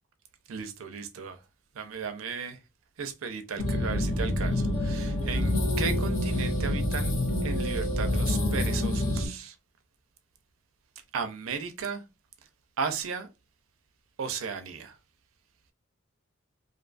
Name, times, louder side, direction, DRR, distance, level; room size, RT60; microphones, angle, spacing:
voice 1, 0.5-1.4 1.7-2.6 3.0-7.1 7.4-9.5 11.1-12.0 12.8-13.3 14.2-15.0, right 6 dB, 75° right, 0.5 m, -35 dB
sound 1, 3.6-9.3, left 1 dB, 80° left, 0.8 m, -27 dB
2.5 x 2.3 x 2.4 m
head